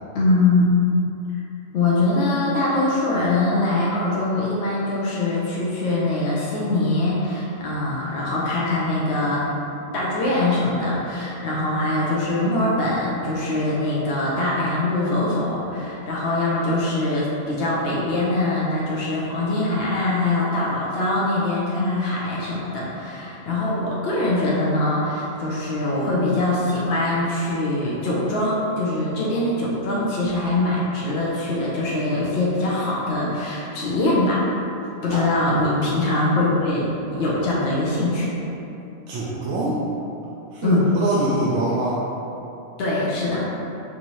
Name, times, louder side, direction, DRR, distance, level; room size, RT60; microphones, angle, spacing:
voice 1, 0.1-0.7 1.7-9.4 9.9-34.5 35.0-38.3 40.6-40.9 42.8-43.5, left 2 dB, 65° left, -6 dB, 0.9 m, -23 dB
voice 2, 39.1-39.8 40.5-42.0, right 1 dB, 80° right, -8 dB, 0.9 m, -24 dB
4.8 x 2.6 x 2.9 m, 2.9 s
omnidirectional pair, 1.2 m